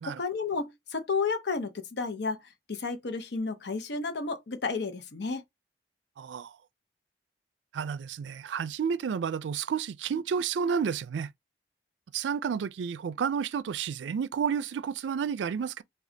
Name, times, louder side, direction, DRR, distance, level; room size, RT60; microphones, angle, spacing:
voice 1, 0.1-2.4 2.7-5.4, left 4 dB, 75° left, 0.7 m, -32 dB
voice 2, 6.2-6.6 7.7-11.3 12.1-15.8, right 7 dB, 90° right, 0.3 m, -31 dB
5.0 x 2.3 x 2.6 m
head